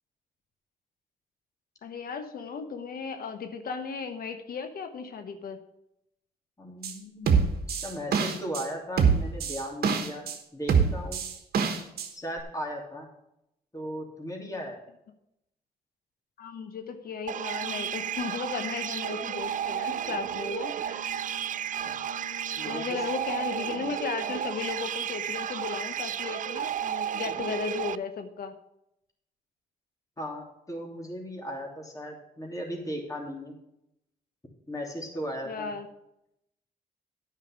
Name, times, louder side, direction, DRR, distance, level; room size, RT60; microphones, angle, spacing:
voice 1, 1.8-5.6 16.4-21.2 22.6-28.6 35.4-35.9, left 5 dB, 65° left, 8 dB, 1.0 m, -35 dB
voice 2, 6.6-7.4 7.7-10.2 10.5-11.2 12.1-13.1 13.7-14.8 21.8-21.9 22.6-23.0 30.2-33.6 34.7-35.7, equal, 20° left, 0 dB, 3.0 m, -37 dB
sound 1, 6.8-6.9 7.3-8.6 9.0-10.4 10.7-12.1 12.4-12.5, right 6 dB, 70° right, 1.3 m, -24 dB
sound 2, 17.3-28.0, right 10 dB, 50° right, 0.4 m, -33 dB
Brass instrument, 17.6-24.0, left 7 dB, 85° left, 3.3 m, -48 dB
9.4 x 5.6 x 7.2 m, 0.83 s
supercardioid pair, 60°, 17 cm